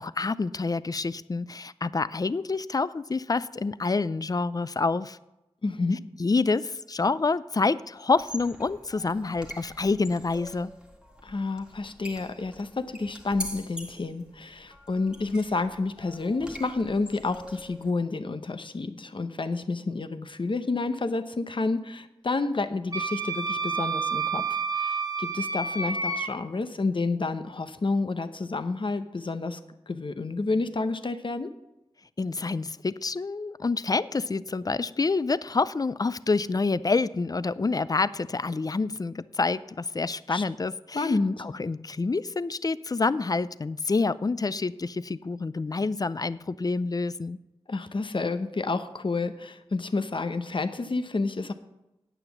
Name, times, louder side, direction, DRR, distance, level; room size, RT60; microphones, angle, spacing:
voice 1, 0.0-5.2 6.2-10.7 32.2-41.1 41.4-47.4, left 3 dB, 40° left, 17 dB, 0.4 m, -27 dB
voice 2, 5.6-6.0 11.2-24.4 24.7-29.6 29.9-31.5 40.3-40.4 40.9-41.5 47.7-51.5, left 3 dB, 55° left, 9 dB, 0.8 m, -29 dB
sound 1, 8.1-17.9, equal, 10° right, 1.7 m, -44 dB
Wind instrument woodwind instrument, 22.9-26.3, right 4 dB, 40° right, 1.2 m, -29 dB
9.1 x 8.0 x 7.1 m, 0.94 s
wide cardioid pair, 65°, 10 cm